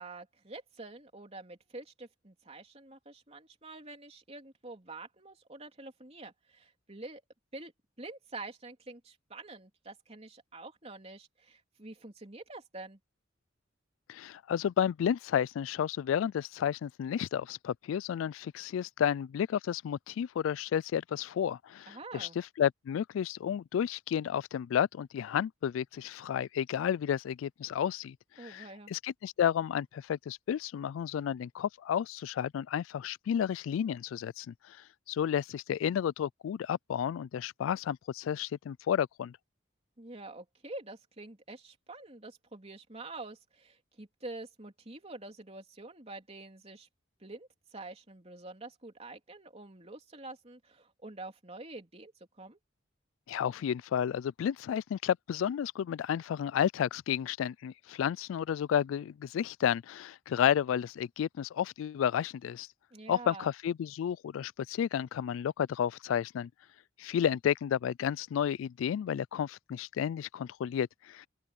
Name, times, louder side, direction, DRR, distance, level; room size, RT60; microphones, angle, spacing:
voice 1, 0.0-7.2 7.5-7.7 8.0-13.0 21.9-22.4 28.4-28.9 40.0-46.9 47.2-52.6 62.9-63.5, right 2 dB, 30° right, 3.3 m, -47 dB
voice 2, 14.1-34.8 35.1-39.4 53.3-62.7 63.1-66.5 67.0-71.3, left 9 dB, 85° left, 0.3 m, -32 dB
open air
head